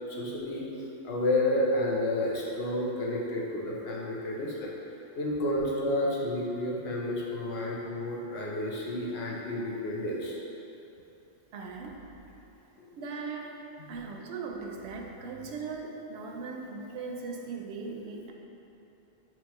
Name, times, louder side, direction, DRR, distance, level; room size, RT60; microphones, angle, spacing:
voice 1, 0.1-0.7 1.0-4.7 5.2-10.4 12.8-12.9 13.8-14.0, left 1 dB, 80° left, -3 dB, 1.0 m, -30 dB
voice 2, 11.5-12.2 12.9-13.6 13.9-18.3, right 4 dB, 85° right, 1 dB, 0.8 m, -39 dB
6.1 x 2.9 x 2.9 m, 3.0 s
omnidirectional pair, 1.1 m